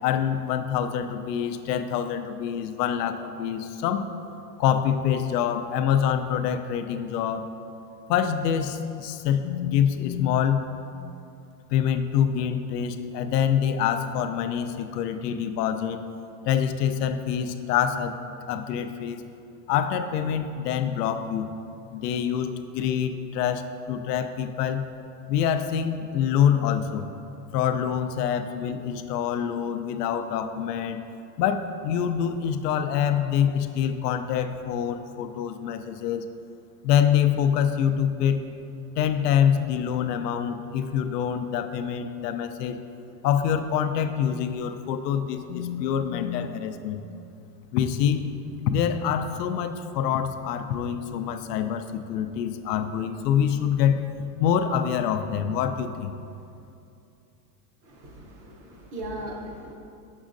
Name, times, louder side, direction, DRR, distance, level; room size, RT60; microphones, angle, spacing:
voice 1, 0.0-4.1 4.6-7.5 8.1-10.6 11.7-16.0 16.5-18.2 18.5-19.2 19.7-21.5 21.9-24.8 25.3-27.1 27.5-31.0 31.4-36.2 36.8-38.4 39.0-42.8 43.2-47.0 47.7-48.3 48.7-54.0 54.4-56.1, left 8 dB, 80° left, 9 dB, 0.5 m, -25 dB
voice 2, 57.8-59.7, right 1 dB, 30° right, 0 dB, 0.6 m, -38 dB
6.3 x 6.2 x 2.5 m, 2.6 s
supercardioid pair, 155°, 48 cm